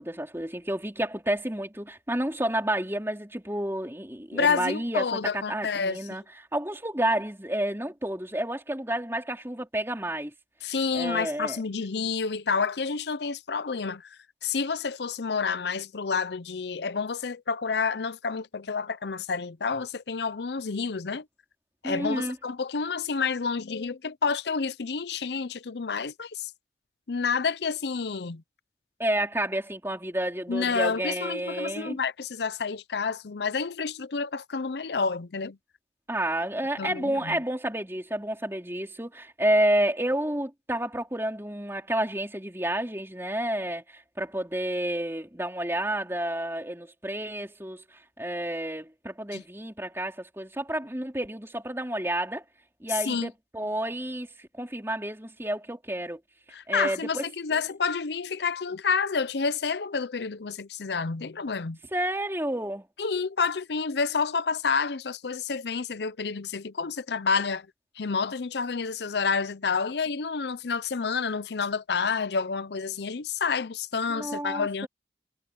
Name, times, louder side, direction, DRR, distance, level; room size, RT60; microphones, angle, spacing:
voice 1, 0.0-6.2 6.5-10.3 10.9-11.6 21.8-22.4 29.0-32.0 36.1-52.4 52.8-56.2 56.7-57.2 57.5-57.6 61.9-62.9 74.1-74.9, right 1 dB, 15° right, 3.9 m, -30 dB
voice 2, 4.3-6.1 10.6-21.3 21.8-26.5 27.1-28.4 30.5-35.6 36.8-37.4 49.3-49.4 52.9-53.3 56.5-61.8 63.0-67.7 68.0-74.9, left 5 dB, 65° left, 0.6 m, -29 dB
head